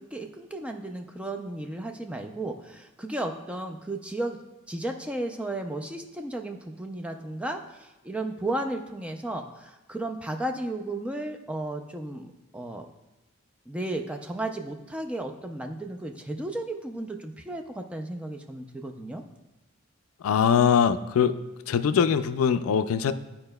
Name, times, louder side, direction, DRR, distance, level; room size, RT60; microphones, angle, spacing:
voice 1, 0.0-4.4 4.7-12.3 12.5-12.9 13.7-19.2, right 1 dB, 5° right, 3 dB, 0.3 m, -34 dB
voice 2, 20.2-21.4 21.7-23.1, left 7 dB, 85° left, 12 dB, 0.3 m, -22 dB
11.5 x 4.3 x 2.2 m, 1.1 s
head